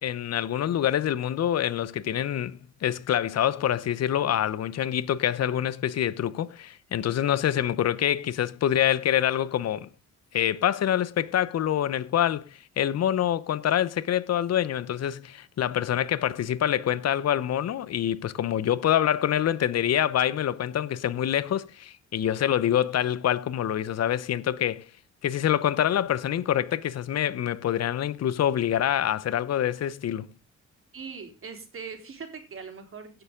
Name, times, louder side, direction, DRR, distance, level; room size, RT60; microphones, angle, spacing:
voice 1, 0.0-9.9 10.3-24.9 25.2-30.3, left 10 dB, 55° left, 0.9 m, -26 dB
voice 2, 30.9-33.2, right 5 dB, 45° right, 3.9 m, -41 dB
17.0 x 6.9 x 3.8 m
cardioid pair, 90°, 30 cm